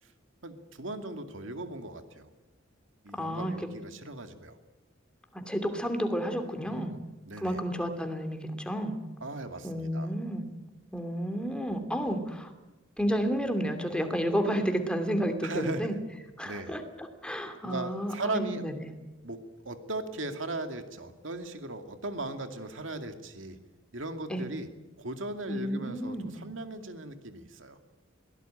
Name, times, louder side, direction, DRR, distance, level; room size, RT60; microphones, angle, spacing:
voice 1, 0.4-2.3 3.0-4.6 6.7-7.6 9.2-10.1 15.4-16.0 16.4-16.8 17.6-18.6 19.2-23.6 23.9-24.7 25.0-27.8, right 2 dB, 70° right, 7 dB, 2.4 m, -38 dB
voice 2, 3.1-3.6 5.3-6.9 7.4-8.9 9.6-10.4 10.9-12.5 13.0-16.0 16.4-18.9 24.3-24.5 25.5-26.3, equal, 5° left, 6 dB, 2.8 m, -31 dB
22.5 x 18.0 x 9.1 m, 1.1 s
head